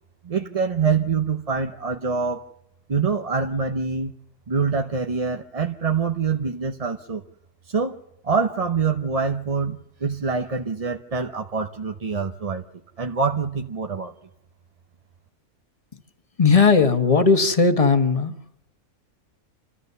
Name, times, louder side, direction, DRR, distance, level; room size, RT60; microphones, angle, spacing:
voice 1, 0.2-2.4 2.9-4.1 4.5-7.2 7.7-8.0 8.2-12.6 13.0-14.1, right 5 dB, 35° right, 5 dB, 0.7 m, -25 dB
voice 2, 16.4-18.4, left 4 dB, 25° left, 7 dB, 1.3 m, -17 dB
28.5 x 13.5 x 6.8 m, 0.85 s
omnidirectional pair, 1.5 m